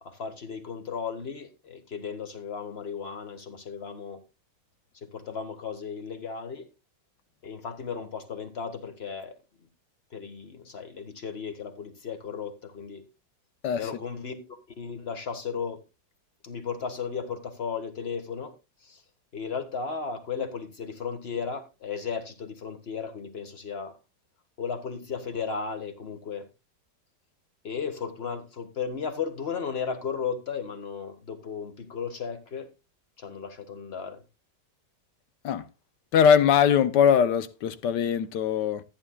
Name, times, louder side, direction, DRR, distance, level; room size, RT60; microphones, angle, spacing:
voice 1, 0.0-4.2 4.9-6.7 7.4-9.7 10.1-13.0 13.8-15.8 16.4-18.5 18.8-19.0 19.3-24.0 24.6-26.5 27.6-32.7 33.2-34.2, left 6 dB, 35° left, 1.6 m, -35 dB
voice 2, 36.1-38.8, left 8 dB, 75° left, 1.4 m, -21 dB
14.0 x 9.8 x 2.3 m
omnidirectional pair, 1.9 m